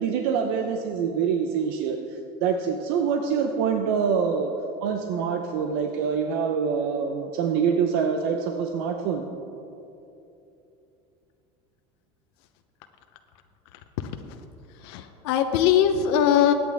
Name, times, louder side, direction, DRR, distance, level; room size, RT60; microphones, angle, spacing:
voice 1, 0.0-4.5 4.8-9.3, right 6 dB, 65° right, 4 dB, 0.8 m, -25 dB
voice 2, 14.8-16.5, left 9 dB, 65° left, 6 dB, 0.7 m, -21 dB
21.5 x 9.0 x 3.5 m, 2.9 s
cardioid pair, 170°, 14 cm